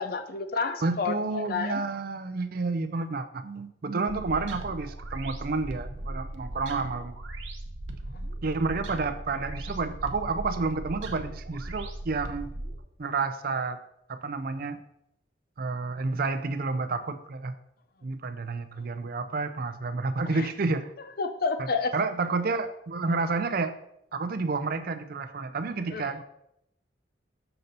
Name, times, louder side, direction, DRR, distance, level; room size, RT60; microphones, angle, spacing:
voice 1, 0.0-1.8 21.2-21.9 25.9-26.1, left 4 dB, 50° left, 0.5 m, -30 dB
voice 2, 0.8-7.2 8.4-12.5 13.0-13.8 14.1-14.8 15.6-17.5 18.0-20.9 21.6-23.8 24.1-26.2, right 3 dB, 50° right, 0.5 m, -30 dB
sound 1, 4.1-12.8, right 1 dB, 75° right, 0.8 m, -38 dB
6.6 x 5.6 x 4.0 m
head